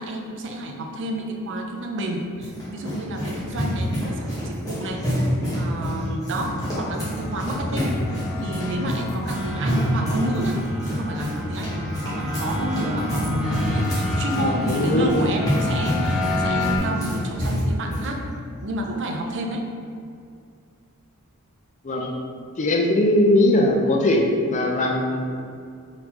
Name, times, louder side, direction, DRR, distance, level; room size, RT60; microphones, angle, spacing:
voice 1, 0.0-5.1 5.5-10.6 10.9-18.2 18.6-19.7, right 1 dB, 55° right, 2 dB, 0.5 m, -30 dB
sound 1, 2.0-18.1, equal, 15° left, 1.2 m, -27 dB
sound 2, 6.7-16.8, left 1 dB, 5° right, 1.1 m, -29 dB
voice 2, 14.4-15.1 21.8-22.1 22.6-25.2, left 1 dB, 35° left, 2 dB, 0.4 m, -20 dB
4.3 x 3.9 x 2.9 m, 2.3 s
head